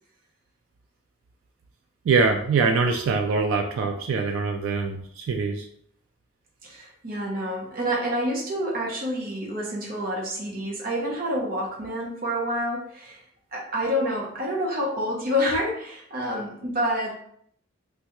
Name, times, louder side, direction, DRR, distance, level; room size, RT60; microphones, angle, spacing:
voice 1, 2.1-5.7, right 4 dB, 90° right, 4 dB, 0.3 m, -23 dB
voice 2, 6.6-13.2 13.5-17.1, equal, 45° right, -2 dB, 0.7 m, -28 dB
3.3 x 2.3 x 2.9 m, 0.68 s
head